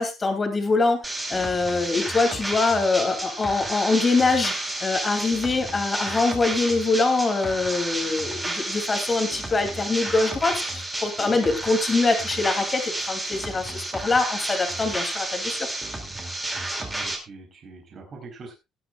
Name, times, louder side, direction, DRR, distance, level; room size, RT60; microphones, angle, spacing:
voice 1, 0.0-4.5 4.8-15.7, left 3 dB, 20° left, 6 dB, 2.8 m, -24 dB
sound 1, 1.0-17.2, right 2 dB, 10° right, 2.6 m, -31 dB
voice 2, 16.4-18.5, right 3 dB, 35° right, 1 dB, 4.0 m, -43 dB
18.5 x 10.0 x 2.4 m, 0.24 s
cardioid pair, 150°, 0 cm